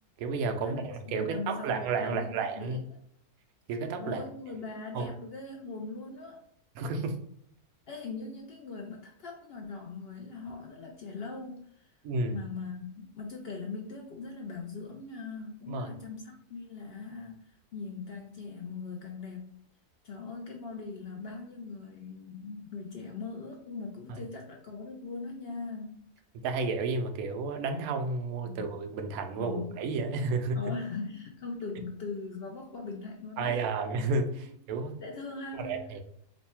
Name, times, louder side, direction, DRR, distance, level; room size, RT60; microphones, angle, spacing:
voice 1, 0.2-2.8 3.7-4.2 4.9-5.1 6.8-7.2 12.0-12.4 15.7-15.9 24.1-24.2 26.4-30.6 33.4-34.9 35.6-36.0, right 3 dB, 75° right, 5 dB, 1.0 m, -31 dB
voice 2, 1.1-3.0 4.0-6.4 7.9-12.0 12.2-19.6 20.0-26.0 28.4-28.7 29.4-29.8 30.5-33.7 34.4-34.5 35.0-35.8, left 4 dB, 70° left, 1 dB, 0.5 m, -40 dB
3.1 x 2.2 x 4.2 m, 0.70 s
omnidirectional pair, 1.6 m